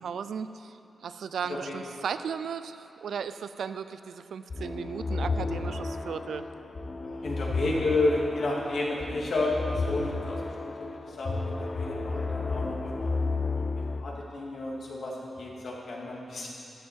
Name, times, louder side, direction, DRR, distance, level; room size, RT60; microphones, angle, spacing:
voice 1, 0.0-6.5, right 7 dB, 90° right, 12 dB, 0.4 m, -36 dB
sound 1, 4.5-14.0, left 3 dB, 45° left, 0.8 m, -32 dB
voice 2, 7.0-13.1 13.7-16.5, left 2 dB, 75° left, -4 dB, 2.6 m, -31 dB
13.5 x 11.0 x 4.6 m, 2.8 s
cardioid pair, 90°, 0 cm